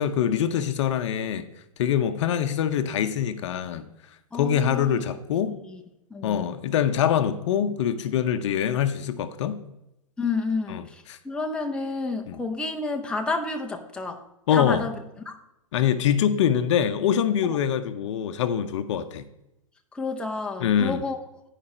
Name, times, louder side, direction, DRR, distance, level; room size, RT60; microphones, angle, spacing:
voice 1, 0.0-1.4 1.8-3.9 4.3-5.6 6.2-9.6 10.7-10.8 11.1-11.2 12.3-12.4 14.5-14.8 15.7-19.2 20.6-21.0, left 9 dB, 55° left, 10 dB, 0.7 m, -24 dB
voice 2, 4.3-5.0 5.6-5.8 6.1-6.5 10.2-14.2 14.5-15.0 15.3-15.4 17.4-17.6 19.9-21.2, left 3 dB, 5° left, 3 dB, 0.7 m, -30 dB
11.0 x 5.0 x 4.3 m, 0.89 s
hypercardioid pair, 125°, 18 cm